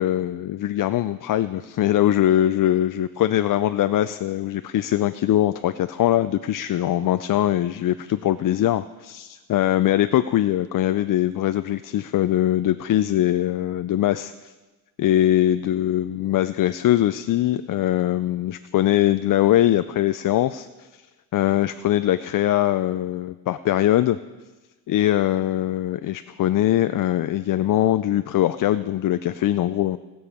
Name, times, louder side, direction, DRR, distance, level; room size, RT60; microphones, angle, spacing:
voice 1, 0.0-14.3 15.0-21.0 21.3-24.2 24.9-30.0, left 12 dB, 55° left, 12 dB, 0.4 m, -22 dB
19.0 x 7.1 x 4.9 m, 1.2 s
cardioid pair, 95°, 40 cm